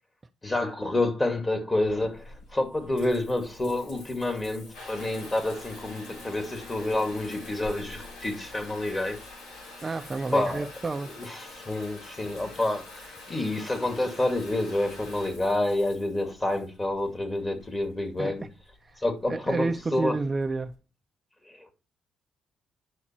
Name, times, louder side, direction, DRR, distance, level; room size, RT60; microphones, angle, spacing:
voice 1, 0.4-9.2 10.3-10.7 11.1-18.4 19.0-20.2 21.5-21.7, left 2 dB, 20° left, 2.4 m, -28 dB
Water tap faucet / Bathtub (filling or washing) / Trickle dribble, 1.8-20.7, left 2 dB, 90° left, 4.2 m, -46 dB
voice 2, 9.8-11.2 18.2-18.5 18.8-19.0 19.3-20.7, right 3 dB, 25° right, 0.6 m, -30 dB
9.9 x 6.3 x 4.5 m
cardioid pair, 110°, 0 cm